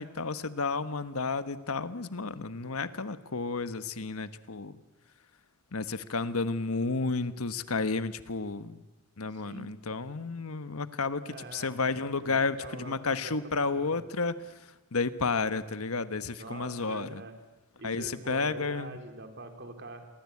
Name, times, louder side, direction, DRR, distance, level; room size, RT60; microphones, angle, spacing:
voice 1, 0.0-4.8 5.7-8.8 9.2-17.2 17.8-19.0, left 4 dB, 80° left, 12 dB, 1.3 m, -32 dB
voice 2, 9.3-9.7 11.3-11.7 12.2-13.3 13.6-13.9 16.4-17.4 17.8-20.1, right 2 dB, 50° right, 6 dB, 3.6 m, -44 dB
29.0 x 23.5 x 8.5 m, 1.1 s
head